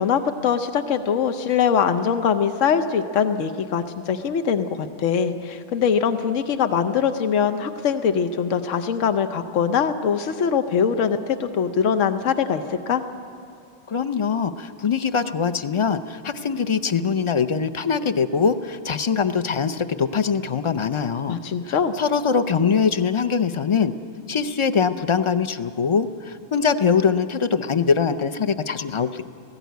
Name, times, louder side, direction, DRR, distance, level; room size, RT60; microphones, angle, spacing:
voice 1, 0.0-13.0 21.3-21.9, left 7 dB, 85° left, 9 dB, 1.1 m, -22 dB
voice 2, 13.9-21.4 21.7-23.9 24.3-29.2, left 6 dB, 40° left, 11 dB, 0.4 m, -22 dB
18.0 x 15.5 x 9.3 m, 2.5 s
omnidirectional pair, 1.3 m